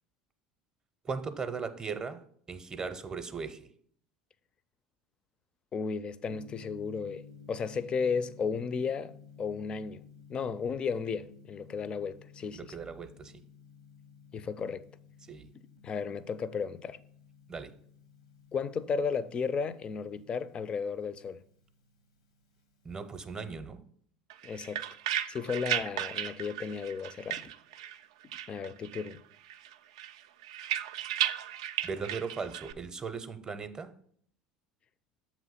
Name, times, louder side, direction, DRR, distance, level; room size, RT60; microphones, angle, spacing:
voice 1, 1.0-3.7 12.5-13.4 15.2-15.5 17.5-17.7 22.8-23.8 27.4-27.5 31.8-33.9, right 5 dB, 25° right, 0.6 m, -38 dB
voice 2, 5.7-7.2 7.5-12.7 14.3-14.9 15.8-17.0 18.5-21.4 24.4-24.9 25.3-27.5 28.5-29.2, left 5 dB, 35° left, 0.4 m, -34 dB
Gong, 6.3-23.5, left 6 dB, 85° left, 0.8 m, -55 dB
sound 1, 24.3-28.0 28.3-29.2 29.5-32.7, right 11 dB, 75° right, 0.3 m, -35 dB
7.2 x 3.0 x 5.6 m
hypercardioid pair, 75°, 3 cm